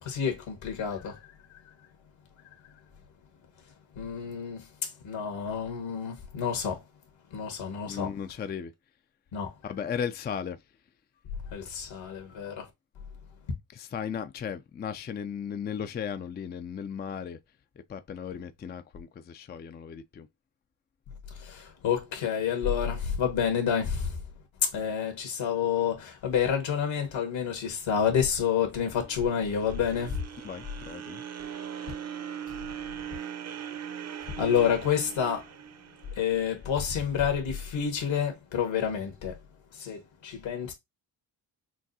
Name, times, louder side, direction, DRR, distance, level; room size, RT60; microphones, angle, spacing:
voice 1, 0.0-1.6 3.9-6.8 7.3-8.1 9.3-9.5 11.5-12.7 21.3-24.2 24.6-30.2 34.3-35.5 36.1-39.4 39.7-40.7, left 7 dB, 70° left, 1.7 m, -29 dB
voice 2, 7.8-8.7 9.6-10.6 13.7-17.4 17.9-20.3 30.4-31.2, left 7 dB, 20° left, 0.4 m, -36 dB
sound 1, 28.7-37.0, right 8 dB, 35° right, 0.7 m, -40 dB
6.1 x 2.3 x 2.7 m
supercardioid pair, 55°, 48 cm